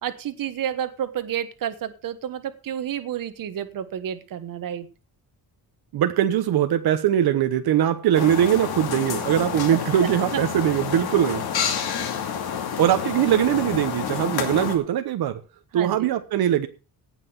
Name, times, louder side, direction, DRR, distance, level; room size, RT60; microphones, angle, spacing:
voice 1, 0.0-4.9 9.7-9.8 10.3-10.4 11.9-12.1 12.5-12.7 15.7-16.1, right 10 dB, 60° right, 11 dB, 1.4 m, -30 dB
voice 2, 5.9-11.4 12.8-15.4 15.7-16.7, right 10 dB, 85° right, 9 dB, 1.2 m, -21 dB
sound 1, 8.1-14.8, left 8 dB, 85° left, 2.7 m, -29 dB
17.5 x 6.1 x 5.9 m, 0.34 s
wide cardioid pair, 170°, 37 cm